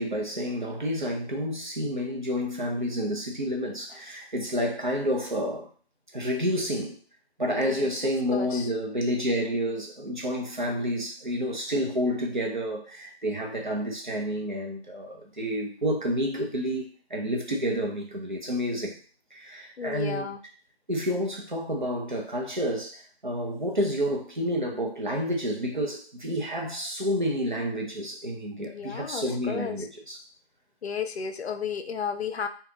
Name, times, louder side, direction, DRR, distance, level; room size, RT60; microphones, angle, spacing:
voice 1, 0.0-5.7 6.1-7.0 7.4-19.0 19.3-20.3 20.9-30.2, equal, 45° right, 0.6 m, -29 dB
voice 2, 7.6-8.0 8.3-8.7 19.8-20.4 28.6-29.9 30.8-32.5, left 7 dB, 75° left, 0.5 m, -33 dB
2.4 x 2.2 x 3.2 m
figure-of-eight pair, 180°, 32 cm